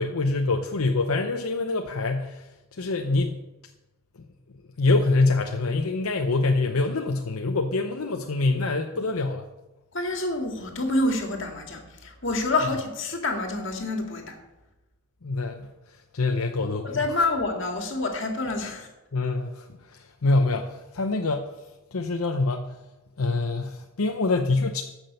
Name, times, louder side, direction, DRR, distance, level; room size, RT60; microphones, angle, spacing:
voice 1, 0.0-3.4 4.8-9.5 15.2-17.2 19.1-21.5 21.9-22.7 23.2-24.8, left 3 dB, 80° left, 4 dB, 0.8 m, -25 dB
voice 2, 9.9-14.4 16.8-18.9, left 2 dB, 55° left, 3 dB, 2.0 m, -27 dB
14.0 x 6.2 x 6.7 m, 1.0 s
head